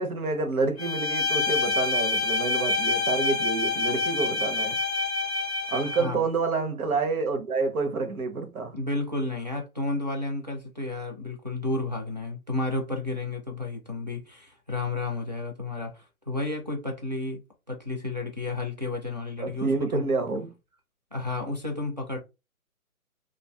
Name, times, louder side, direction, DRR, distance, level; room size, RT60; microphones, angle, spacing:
voice 1, 0.0-4.8 5.7-8.7 19.4-20.5, right 3 dB, 75° right, 0.9 m, -28 dB
Bowed string instrument, 0.8-6.1, left 3 dB, 50° left, 0.5 m, -27 dB
voice 2, 5.8-6.2 8.7-17.4 17.7-20.0 21.1-22.2, left 2 dB, 30° right, 0.4 m, -32 dB
2.4 x 2.3 x 2.2 m
hypercardioid pair, 165°, 43 cm